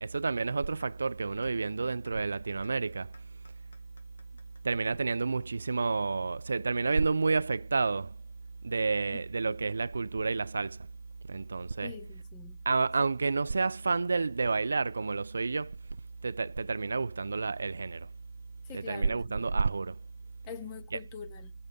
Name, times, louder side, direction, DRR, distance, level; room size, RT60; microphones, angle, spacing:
voice 1, 0.0-3.1 4.6-8.1 8.6-10.9 11.3-11.9 12.7-15.8 16.2-18.1 18.7-20.0, right 4 dB, 80° right, 0.3 m, -30 dB
sound 1, 0.8-0.9 1.4-1.5 2.1-2.2 2.6-2.7 3.1-6.1, left 3 dB, 90° left, 2.4 m, -60 dB
voice 2, 9.1-9.6 11.8-12.6 18.7-19.5 20.5-21.5, left 8 dB, 15° left, 0.6 m, -45 dB
6.3 x 5.3 x 6.8 m
hypercardioid pair, 170°, 0 cm